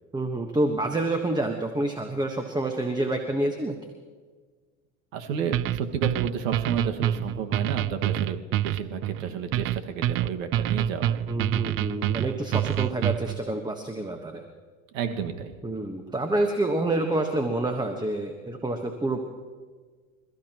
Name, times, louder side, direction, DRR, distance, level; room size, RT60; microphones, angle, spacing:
voice 1, 0.1-3.8 11.3-14.4 15.6-19.2, right 2 dB, 10° right, 4 dB, 1.3 m, -28 dB
voice 2, 5.1-11.2 14.9-15.5, right 7 dB, 75° right, 5 dB, 1.9 m, -31 dB
sound 1, 5.5-13.4, right 12 dB, 35° right, 0.4 m, -26 dB
28.0 x 14.5 x 3.0 m, 1.5 s
hypercardioid pair, 95°, 40 cm